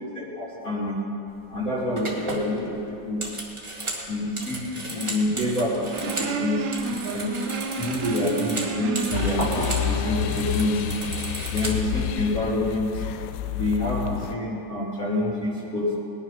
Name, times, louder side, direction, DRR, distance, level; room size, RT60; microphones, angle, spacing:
voice 1, 0.1-1.0 1.5-3.2 4.1-11.0 11.5-13.0 13.5-15.9, left 1 dB, 25° left, -7 dB, 3.1 m, -27 dB
sound 1, 1.3-1.5 1.9-6.3 6.6-9.9 10.1-12.0, right 2 dB, 15° right, 1.1 m, -35 dB
sound 2, 5.9-10.5, right 5 dB, 70° right, 1.9 m, -32 dB
sound 3, 9.1-14.3, left 12 dB, 90° left, 2.3 m, -29 dB
20.0 x 10.5 x 5.8 m, 2.6 s
omnidirectional pair, 3.9 m